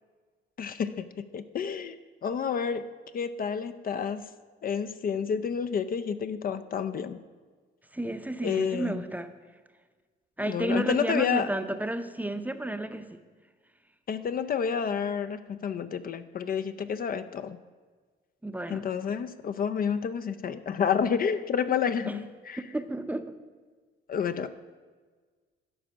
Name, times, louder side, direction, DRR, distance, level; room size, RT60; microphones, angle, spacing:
voice 1, 0.6-2.0 2.2-2.9 3.1-4.3 4.6-7.2 8.4-9.0 10.4-11.5 14.1-17.6 18.7-22.6 24.1-24.5, left 7 dB, 45° left, 10 dB, 0.5 m, -29 dB
voice 2, 7.9-9.3 10.4-13.1 18.4-18.8 22.1-22.2 22.7-23.3, right 1 dB, 10° right, 9 dB, 0.6 m, -31 dB
12.5 x 4.9 x 6.3 m, 1.5 s
cardioid pair, 90°, 20 cm